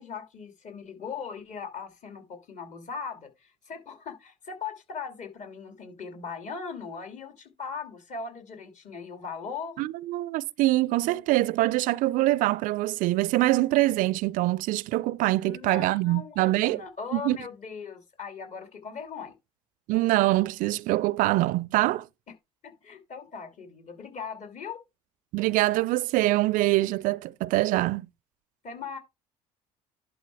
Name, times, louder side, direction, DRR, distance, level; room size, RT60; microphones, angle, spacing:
voice 1, 0.0-9.8 15.4-19.3 22.6-24.8 28.6-29.0, left 6 dB, 50° left, 2.7 m, -39 dB
voice 2, 9.8-16.8 17.1-17.4 19.9-22.1 25.3-28.1, right 18 dB, 60° right, 0.4 m, -24 dB
11.0 x 4.3 x 4.7 m
hypercardioid pair, 60°, 16 cm